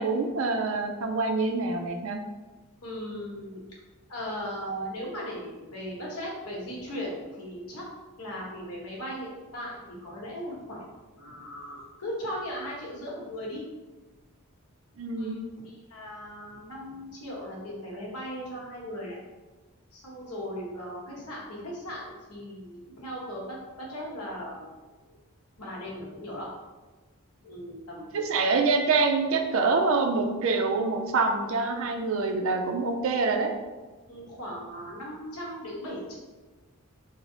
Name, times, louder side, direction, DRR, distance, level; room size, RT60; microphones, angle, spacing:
voice 1, 0.0-2.2 15.0-15.4 28.1-33.5, right 3 dB, 65° right, 4 dB, 0.4 m, -26 dB
voice 2, 2.8-3.7 4.1-7.9 8.2-10.8 11.1-13.6 15.2-19.2 19.9-24.7 25.1-25.2 25.6-26.5 27.4-28.5 34.1-36.1, equal, 90° left, -4 dB, 1.1 m, -38 dB
3.2 x 2.0 x 3.8 m, 1.2 s
head